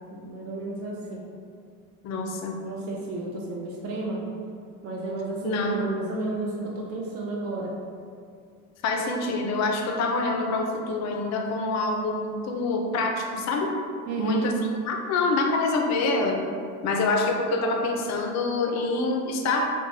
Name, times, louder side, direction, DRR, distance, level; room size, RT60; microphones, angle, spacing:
voice 1, 0.1-1.2 2.6-4.2 4.8-7.7 14.1-14.5, right 2 dB, 35° right, -2 dB, 0.4 m, -31 dB
voice 2, 2.0-2.6 5.4-5.8 8.8-13.8 14.2-14.5 14.9-16.4 16.8-19.7, left 3 dB, 40° left, 2 dB, 0.4 m, -26 dB
2.9 x 2.2 x 2.6 m, 2.2 s
supercardioid pair, 90°, 43 cm